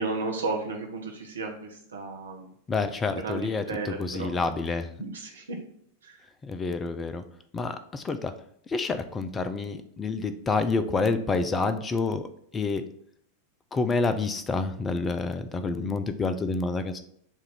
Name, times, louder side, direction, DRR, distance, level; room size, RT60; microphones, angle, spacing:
voice 1, 0.0-2.5 3.1-4.3 5.0-5.6 6.0-6.2, right 3 dB, 70° right, 1 dB, 0.8 m, -33 dB
voice 2, 2.7-4.9 6.4-7.2 7.5-8.3 8.7-12.3 12.5-12.8 13.7-17.0, left 3 dB, 20° left, 10 dB, 0.5 m, -28 dB
7.1 x 2.6 x 5.7 m, 0.68 s
figure-of-eight pair, 90°, 0 cm